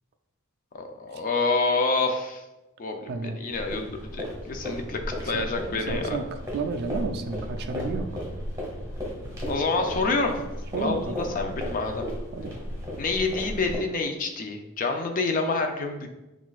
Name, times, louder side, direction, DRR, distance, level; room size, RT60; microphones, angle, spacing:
voice 1, 0.7-2.4 2.8-6.2 9.5-10.4 10.8-12.1 13.0-16.1, left 3 dB, 40° left, 4 dB, 0.5 m, -27 dB
voice 2, 3.1-3.4 5.2-5.5 5.7-8.2 10.7-11.2 12.3-12.5, right 4 dB, 50° right, 5 dB, 0.3 m, -32 dB
sound 1, 3.5-13.8, equal, 15° right, 1.0 m, -35 dB
5.9 x 2.4 x 2.4 m, 0.99 s
head